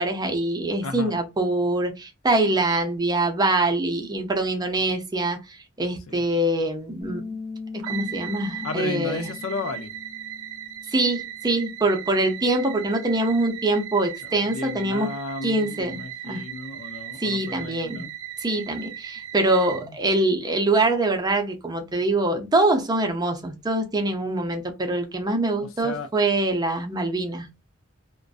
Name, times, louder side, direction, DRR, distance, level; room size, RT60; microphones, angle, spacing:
voice 1, 0.0-7.2 7.9-9.3 10.9-15.1 15.4-16.4 17.2-18.1 18.4-27.5, right 2 dB, 20° right, 0.5 m, -24 dB
voice 2, 0.8-1.2 6.1-6.2 8.6-9.9 14.2-18.1 19.7-19.9 25.8-26.1, left 3 dB, 75° left, 0.4 m, -34 dB
Bass guitar, 7.0-13.2, left 4 dB, 30° left, 0.6 m, -40 dB
sound 1, 7.8-19.9, right 10 dB, 75° right, 0.4 m, -38 dB
2.5 x 2.2 x 2.3 m
head